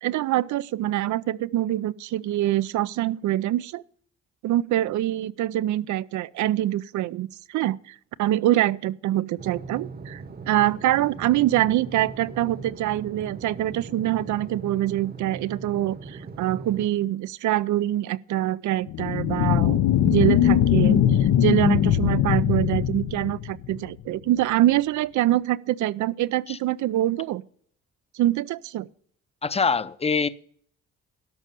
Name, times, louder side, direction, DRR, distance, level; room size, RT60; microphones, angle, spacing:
voice 1, 0.0-3.8 4.4-19.8 20.0-27.4 28.1-28.9, right 14 dB, 75° right, 0.5 m, -25 dB
sound 1, 9.4-16.9, right 4 dB, 30° right, 1.0 m, -39 dB
sound 2, 18.9-23.9, left 11 dB, 80° left, 0.8 m, -21 dB
voice 2, 29.4-30.3, left 5 dB, 20° left, 0.6 m, -24 dB
12.5 x 5.4 x 8.1 m
cardioid pair, 90°, 30 cm